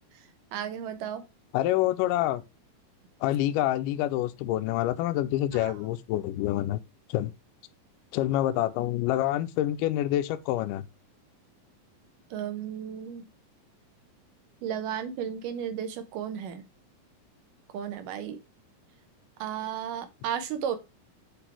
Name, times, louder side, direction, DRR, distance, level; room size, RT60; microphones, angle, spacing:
voice 1, 0.1-1.2 5.5-5.7 12.3-13.3 14.6-16.7 17.7-18.4 19.4-20.8, right 9 dB, 70° right, 2.4 m, -34 dB
voice 2, 1.5-2.4 3.2-6.8 7.1-7.3 8.1-10.8, left 14 dB, 80° left, 2.0 m, -27 dB
8.1 x 3.4 x 4.5 m
omnidirectional pair, 4.1 m